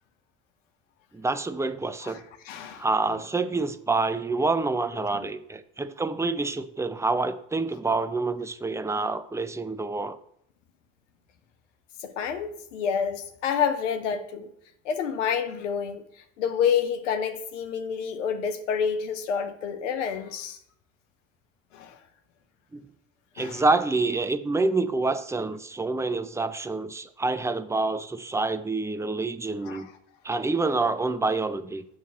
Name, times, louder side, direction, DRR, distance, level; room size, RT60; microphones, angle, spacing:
voice 1, 1.1-2.2 2.8-10.2 22.7-22.8 23.4-29.9 30.2-31.9, right 3 dB, 10° right, 0.5 m, -27 dB
voice 2, 2.4-2.9 5.0-5.3 12.0-14.5 14.8-20.6 21.7-22.0 23.4-23.6 29.6-29.9, left 7 dB, 90° left, 0.6 m, -29 dB
7.0 x 3.1 x 5.7 m
hypercardioid pair, 50°, 36 cm